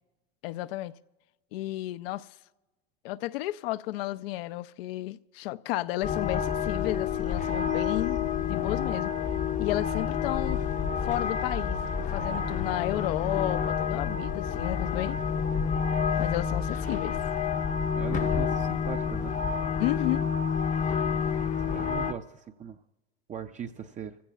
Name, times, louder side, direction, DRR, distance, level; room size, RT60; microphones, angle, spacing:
voice 1, 0.4-0.9 1.5-2.3 3.0-9.1 9.6-10.6 11.0-15.2 16.2-17.2 19.8-20.2, left 16 dB, 70° left, 0.6 m, -32 dB
sound 1, 6.0-22.1, left 7 dB, 25° left, 0.7 m, -29 dB
voice 2, 17.9-19.3 21.7-22.8 23.3-24.2, right 8 dB, 25° right, 0.5 m, -39 dB
25.0 x 15.5 x 2.4 m
supercardioid pair, 105°, 30 cm